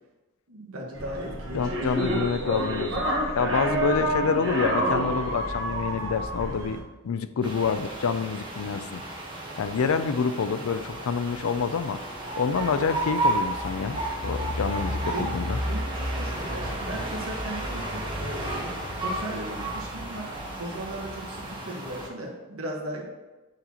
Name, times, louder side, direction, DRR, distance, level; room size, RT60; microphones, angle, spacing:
voice 1, 0.5-1.9 3.3-4.2 14.8-20.3 20.6-23.0, right 1 dB, 90° right, -1 dB, 1.4 m, -37 dB
sound 1, 0.9-6.8, right 1 dB, 65° right, 1.2 m, -28 dB
voice 2, 1.5-3.0 3.4-9.0 9.6-12.0 12.4-15.6, left 5 dB, 85° left, 11 dB, 0.4 m, -27 dB
sound 2, 7.4-22.1, right 1 dB, 20° right, 1.2 m, -32 dB
7.9 x 4.1 x 2.9 m, 1.1 s
head